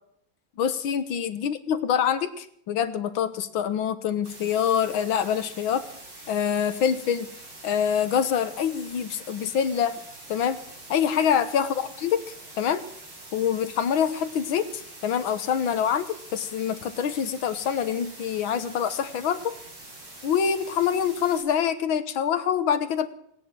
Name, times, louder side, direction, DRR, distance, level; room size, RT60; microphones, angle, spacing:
voice 1, 0.6-5.8 6.3-7.3 7.6-10.0 10.3-10.6 10.9-12.2 12.6-12.8 13.3-16.1 16.3-19.6 20.2-23.1, left 8 dB, 75° left, 11 dB, 1.9 m, -25 dB
sound 1, 4.2-21.4, right 2 dB, 60° right, 4.8 m, -45 dB
18.0 x 10.5 x 7.5 m, 0.69 s
omnidirectional pair, 2.2 m